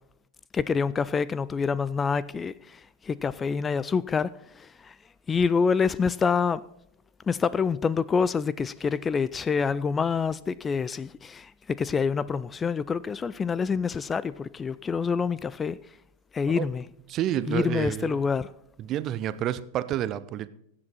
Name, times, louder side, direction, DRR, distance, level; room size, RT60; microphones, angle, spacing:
voice 1, 0.5-4.9 5.3-6.6 7.3-15.8 16.3-16.8 17.5-18.5, left 5 dB, 20° left, 0.3 m, -27 dB
voice 2, 17.1-18.2 18.8-20.5, right 11 dB, 35° right, 0.6 m, -29 dB
16.5 x 7.7 x 4.1 m
figure-of-eight pair, 90°, 0 cm